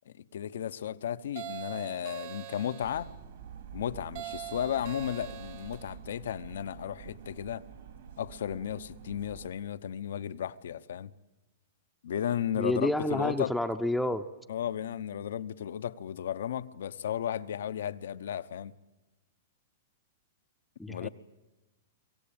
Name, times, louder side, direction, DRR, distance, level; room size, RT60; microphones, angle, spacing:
voice 1, 0.1-3.1 3.7-7.6 8.2-11.1 12.0-13.5 14.5-18.7 20.9-21.1, left 9 dB, 80° left, 0.9 m, -34 dB
sound 1, 1.4-3.1 4.2-5.9, right 13 dB, 50° right, 1.2 m, -43 dB
sound 2, 2.8-9.5, right 8 dB, 70° right, 4.1 m, -48 dB
voice 2, 12.5-14.2 20.8-21.1, left 1 dB, ahead, 0.7 m, -29 dB
24.5 x 17.0 x 8.8 m
hypercardioid pair, 155°, 0 cm